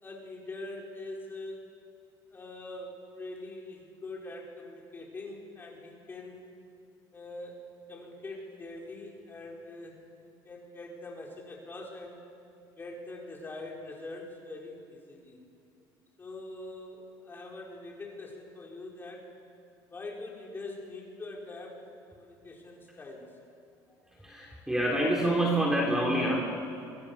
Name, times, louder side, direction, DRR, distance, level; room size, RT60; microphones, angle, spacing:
voice 1, 0.0-1.7 2.3-6.4 7.1-7.6 7.9-12.3 12.8-15.4 16.2-19.3 19.9-23.3, left 2 dB, 25° left, -1 dB, 5.4 m, -43 dB
voice 2, 24.2-26.3, right 1 dB, 5° right, -2 dB, 3.8 m, -27 dB
25.0 x 24.5 x 7.3 m, 2.5 s
cardioid pair, 120°, 9 cm